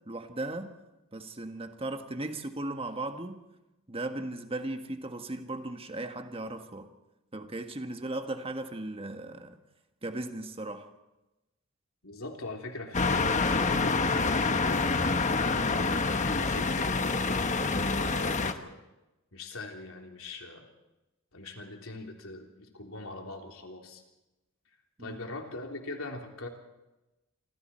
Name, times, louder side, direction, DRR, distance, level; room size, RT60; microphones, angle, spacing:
voice 1, 0.1-0.7 1.1-3.4 3.9-6.9 7.3-9.6 10.0-10.9 25.0-25.2, right 2 dB, 25° right, 1.5 m, -37 dB
voice 2, 12.0-18.8 19.3-20.7 21.3-24.0 25.0-26.5, left 2 dB, 75° left, 3.3 m, -42 dB
sound 1, 12.9-18.5, left 3 dB, 35° left, 1.2 m, -27 dB
27.0 x 25.5 x 4.4 m
head